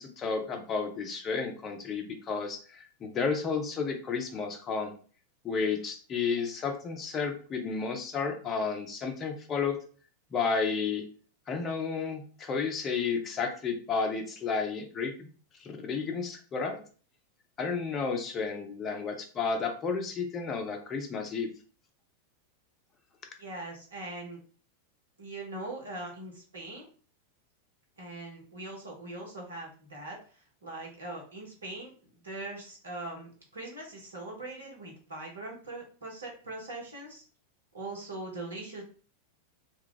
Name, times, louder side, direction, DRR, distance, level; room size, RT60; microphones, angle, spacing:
voice 1, 0.0-4.9 5.4-9.8 10.3-11.0 11.5-15.3 15.6-16.8 17.6-21.5, left 5 dB, 25° left, 4 dB, 0.6 m, -32 dB
voice 2, 23.4-24.4 25.2-26.9 28.0-37.2 37.7-38.8, right 2 dB, 70° right, -1 dB, 1.1 m, -41 dB
2.3 x 2.3 x 3.8 m, 0.40 s
figure-of-eight pair, 90°, 0 cm